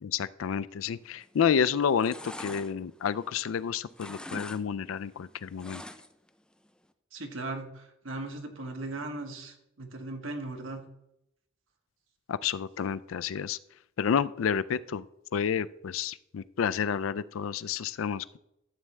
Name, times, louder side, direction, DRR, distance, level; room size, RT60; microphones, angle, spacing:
voice 1, 0.0-5.8 12.3-13.6 14.0-15.0 15.3-18.4, left 7 dB, 80° left, 16 dB, 0.4 m, -30 dB
sound 1, 1.2-1.5 1.8-3.6 3.9-4.6 4.9-6.3 6.6-6.7, left 1 dB, 5° left, 0.4 m, -43 dB
voice 2, 7.1-10.8, right 2 dB, 75° right, 3 dB, 1.5 m, -38 dB
12.5 x 7.3 x 3.3 m, 0.82 s
head